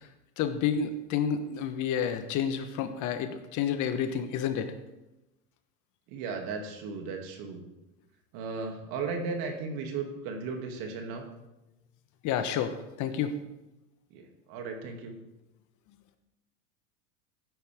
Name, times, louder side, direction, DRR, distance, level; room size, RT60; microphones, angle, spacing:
voice 1, 0.4-4.7 12.2-13.3, left 8 dB, 40° left, 9 dB, 1.2 m, -30 dB
voice 2, 6.1-7.6 8.3-11.2 14.1-15.1, right 4 dB, 50° right, 3 dB, 2.7 m, -36 dB
15.5 x 9.8 x 3.6 m, 0.98 s
hypercardioid pair, 110°, 46 cm